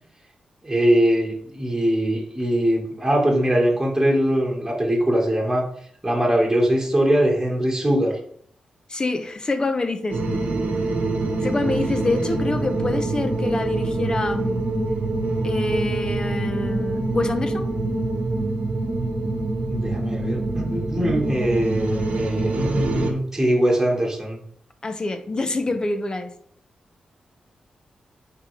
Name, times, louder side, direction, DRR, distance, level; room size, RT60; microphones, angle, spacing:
voice 1, 0.6-5.7 6.0-8.2 19.7-24.4, right 1 dB, 15° right, -2 dB, 1.6 m, -21 dB
voice 2, 8.9-10.2 11.4-14.6 15.4-17.7 24.8-26.3, left 2 dB, 30° left, 8 dB, 0.8 m, -26 dB
sound 1, 10.1-23.1, right 2 dB, 80° right, 1.1 m, -25 dB
8.6 x 3.8 x 3.3 m, 0.63 s
cardioid pair, 85°, 3 cm